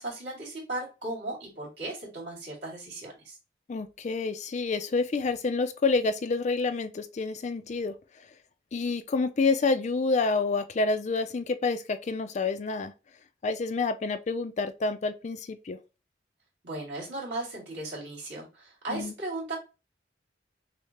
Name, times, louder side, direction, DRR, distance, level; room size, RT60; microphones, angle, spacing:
voice 1, 0.0-3.4 16.6-19.6, right 2 dB, 65° right, 2.4 m, -36 dB
voice 2, 3.7-7.9 8.7-12.9 13.4-15.8 18.9-19.1, left 3 dB, 40° left, 0.4 m, -28 dB
6.3 x 2.1 x 2.9 m
head